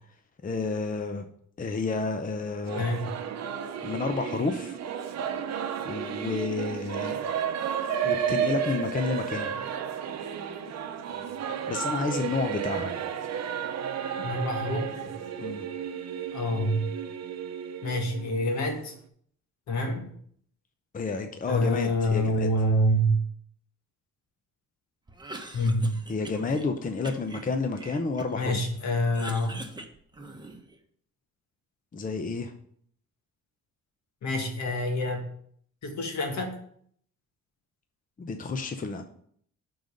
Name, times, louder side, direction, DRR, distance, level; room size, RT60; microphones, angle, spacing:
voice 1, 0.4-1.2 1.6-2.8 3.8-4.8 5.8-7.2 8.0-9.5 11.7-12.9 15.4-15.7 20.9-22.5 26.1-28.6 31.9-32.5 38.2-39.0, left 4 dB, 25° left, 6 dB, 0.7 m, -30 dB
Singing / Musical instrument, 2.7-19.0, right 8 dB, 60° right, 0.8 m, -32 dB
voice 2, 2.8-3.1 14.2-15.2 16.3-16.9 17.8-18.9 19.7-20.0 21.5-23.2 25.5-26.0 28.4-29.6 34.2-35.2 35.8-36.5, equal, 65° left, 3 dB, 1.8 m, -27 dB
Cough, 25.1-26.7 27.0-28.5 28.9-30.8, right 2 dB, 15° right, 1.0 m, -43 dB
6.8 x 3.9 x 6.5 m, 0.64 s
cardioid pair, 90°, 30 cm